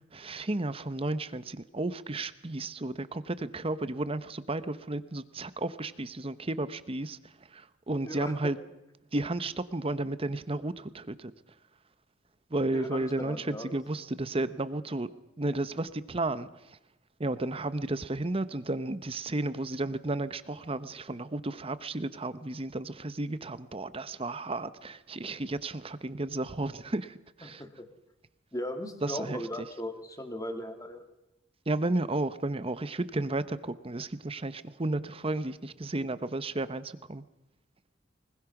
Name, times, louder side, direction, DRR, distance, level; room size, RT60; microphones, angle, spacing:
voice 1, 0.1-7.2 7.5-8.6 9.1-11.3 12.5-15.1 15.4-16.5 17.2-27.6 29.0-29.4 31.7-37.2, right 2 dB, 30° right, 14 dB, 0.9 m, -33 dB
voice 2, 8.0-8.5 12.7-13.7 27.4-27.9 28.5-31.0, left 1 dB, 20° left, 6 dB, 2.2 m, -38 dB
24.0 x 21.0 x 6.0 m, 0.90 s
head